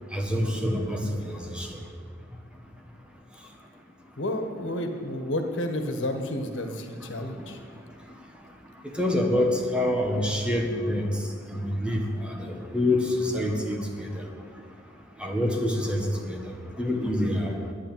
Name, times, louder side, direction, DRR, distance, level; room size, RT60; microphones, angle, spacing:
voice 1, 0.1-1.0 1.2-1.8 9.0-11.1 11.5-14.1 15.2-16.4 16.8-17.6, left 1 dB, 5° right, 1 dB, 1.6 m, -26 dB
voice 2, 4.2-7.6, left 1 dB, 90° left, 5 dB, 1.6 m, -31 dB
11.5 x 9.7 x 9.0 m, 2.1 s
head